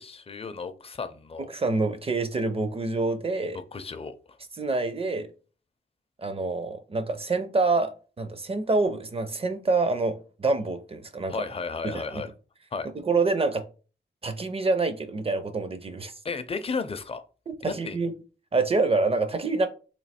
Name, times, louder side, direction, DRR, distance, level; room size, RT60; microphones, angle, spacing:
voice 1, 0.0-1.5 3.7-4.2 11.3-12.3 12.7-12.9 16.2-17.2 17.6-18.0, left 4 dB, 30° left, 0.4 m, -33 dB
voice 2, 1.5-3.6 4.6-5.3 6.2-7.9 8.2-11.4 11.8-12.2 13.0-13.6 14.2-16.1 17.6-18.1 18.5-19.7, right 3 dB, 30° right, 0.4 m, -26 dB
3.1 x 2.6 x 4.2 m
wide cardioid pair, 125°, 19 cm